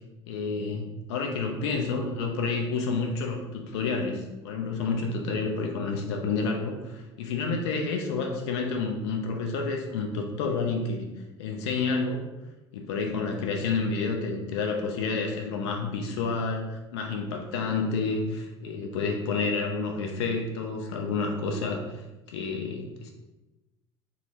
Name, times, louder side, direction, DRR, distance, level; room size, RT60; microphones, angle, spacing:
voice 1, 0.3-11.1 11.4-12.3 12.7-22.0 22.3-23.1, left 4 dB, 70° left, 2 dB, 0.5 m, -29 dB
3.6 x 2.0 x 2.9 m, 1.1 s
figure-of-eight pair, 65°, 15 cm